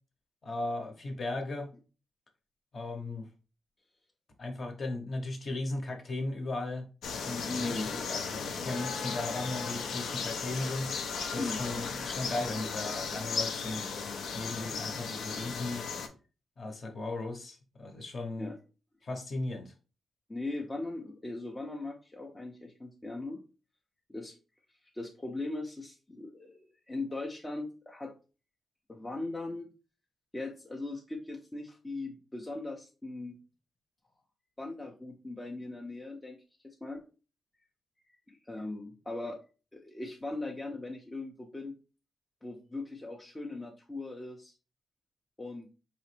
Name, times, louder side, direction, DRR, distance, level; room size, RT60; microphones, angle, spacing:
voice 1, 0.4-1.7 2.7-3.2 4.4-6.9 7.2-11.0 11.3-14.1 14.3-15.8 16.6-18.5 19.0-19.7, left 2 dB, 35° left, 0.9 m, -36 dB
sound 1, 7.0-16.1, left 5 dB, 75° left, 0.6 m, -36 dB
voice 2, 7.5-7.9 11.2-11.6 18.4-18.6 20.3-23.4 24.1-24.3 24.9-28.1 28.9-29.7 30.3-33.4 34.6-37.0 38.3-39.4 39.7-41.8 42.4-44.5 45.4-45.7, left 2 dB, 15° left, 0.5 m, -39 dB
4.8 x 2.9 x 3.2 m
wide cardioid pair, 155°, 0 cm